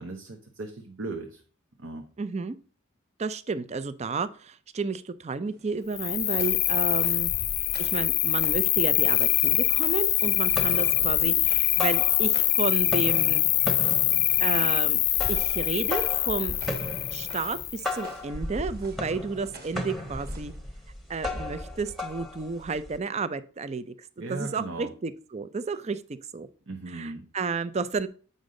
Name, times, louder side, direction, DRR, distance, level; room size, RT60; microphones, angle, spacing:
voice 1, 0.0-1.4 1.8-2.1 24.2-24.9 26.7-27.2, right 2 dB, 65° right, 4 dB, 0.8 m, -37 dB
voice 2, 2.2-2.6 3.2-7.3 7.8-13.4 14.4-15.0 15.3-16.5 17.1-20.5 21.1-23.9 24.3-26.0 26.3-26.5 26.9-28.1, right 4 dB, 30° right, 14 dB, 0.4 m, -32 dB
sound 1, 5.4-20.6, right 2 dB, 50° right, 1.6 m, -51 dB
Cricket, 5.9-17.9, left 15 dB, 55° left, 0.5 m, -24 dB
sound 2, 9.0-9.1 9.4-10.1 10.4-12.6 12.8-23.0, left 1 dB, ahead, 1.1 m, -36 dB
8.0 x 5.2 x 3.8 m, 0.40 s
head